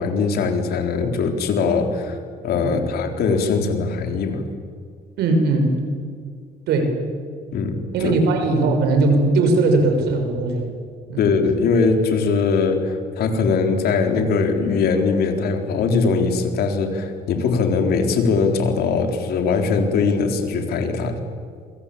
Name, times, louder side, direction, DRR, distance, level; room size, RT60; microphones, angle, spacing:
voice 1, 0.0-2.2 2.4-4.4 7.5-8.1 11.2-21.2, left 4 dB, 70° left, 5 dB, 4.1 m, -21 dB
voice 2, 5.2-5.8 6.7-7.0 7.9-10.7 11.1-11.3, right 2 dB, 75° right, 5 dB, 6.2 m, -19 dB
28.0 x 23.5 x 8.7 m, 2.1 s
cardioid pair, 110°, 17 cm